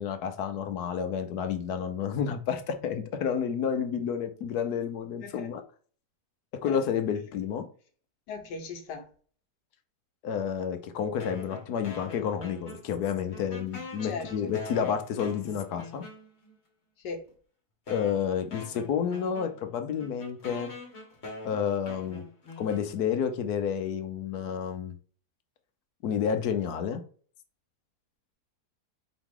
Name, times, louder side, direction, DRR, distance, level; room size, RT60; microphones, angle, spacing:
voice 1, 0.0-5.6 6.6-7.7 10.2-16.0 17.9-20.7 21.4-22.2 22.6-25.0 26.0-27.0, left 7 dB, 70° left, 1.2 m, -30 dB
voice 2, 8.3-9.1 14.0-14.5 17.0-17.2, left 4 dB, 90° left, 1.5 m, -38 dB
sound 1, 11.2-13.0 13.3-16.6 17.3-17.4 17.9-23.3, left 2 dB, 45° left, 1.5 m, -44 dB
4.8 x 3.0 x 3.6 m
omnidirectional pair, 1.8 m